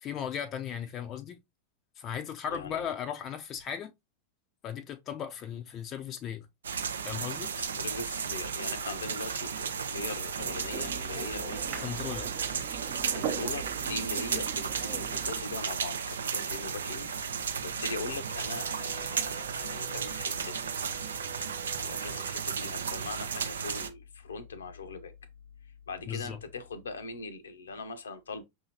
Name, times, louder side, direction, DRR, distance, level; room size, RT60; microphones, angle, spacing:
voice 1, 0.0-1.4 2.0-3.9 4.6-6.5 7.0-7.5 11.8-12.3 26.1-26.4, left 8 dB, 30° left, 0.5 m, -36 dB
voice 2, 2.5-2.9 7.6-12.2 13.1-17.1 17.3-20.6 21.8-25.1 25.9-28.4, left 4 dB, 70° left, 0.6 m, -40 dB
sound 1, 6.6-23.9, right 6 dB, 70° right, 0.4 m, -34 dB
sound 2, 10.4-15.4, right 8 dB, 45° right, 0.8 m, -40 dB
sound 3, 11.1-16.0 18.1-22.4, right 5 dB, 25° right, 1.0 m, -54 dB
5.4 x 2.7 x 2.8 m
figure-of-eight pair, 90°, 0 cm